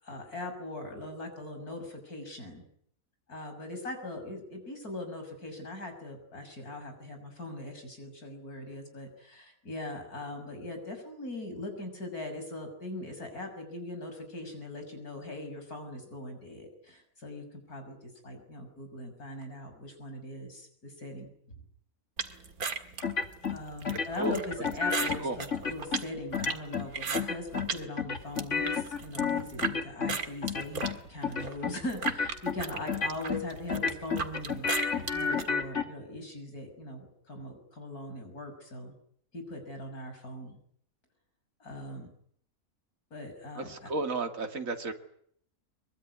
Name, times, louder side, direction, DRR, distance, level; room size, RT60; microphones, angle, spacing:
voice 1, 0.0-2.7 3.3-21.3 21.5-21.6 23.5-34.7 35.1-38.9 39.3-40.6 41.6-42.1 43.1-43.9, left 1 dB, 90° left, 5 dB, 6.9 m, -41 dB
sound 1, 22.2-27.8 28.2-29.7 30.1-35.5, right 5 dB, 80° right, 2.4 m, -36 dB
sound 2, 23.0-23.6 23.8-25.2 25.5-26.0 26.3-26.9 27.1-27.7 28.0-30.2 30.4-31.0 31.2-31.7 32.0-32.6 32.9-33.4 33.7-35.8, left 6 dB, 55° left, 2.4 m, -31 dB
voice 2, 43.6-44.9, right 3 dB, 65° right, 5 dB, 2.7 m, -33 dB
23.5 x 23.0 x 9.6 m, 0.67 s
omnidirectional pair, 1.5 m